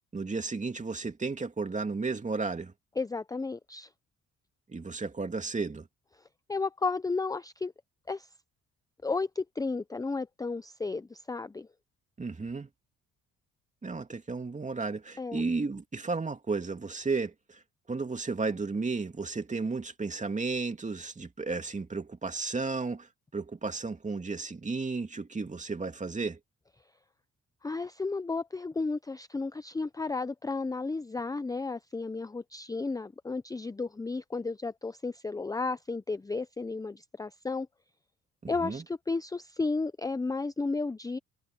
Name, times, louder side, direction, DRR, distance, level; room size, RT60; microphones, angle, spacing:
voice 1, 0.1-2.7 4.7-5.9 12.2-12.7 13.8-17.6 17.9-23.1 23.3-26.4 38.4-38.8, right 4 dB, 25° right, 2.6 m, -33 dB
voice 2, 3.0-3.9 6.5-7.7 8.1-8.3 9.0-11.7 15.2-15.4 27.6-37.7 38.5-41.2, left 3 dB, 10° left, 0.5 m, -33 dB
cardioid pair, 90°, 30 cm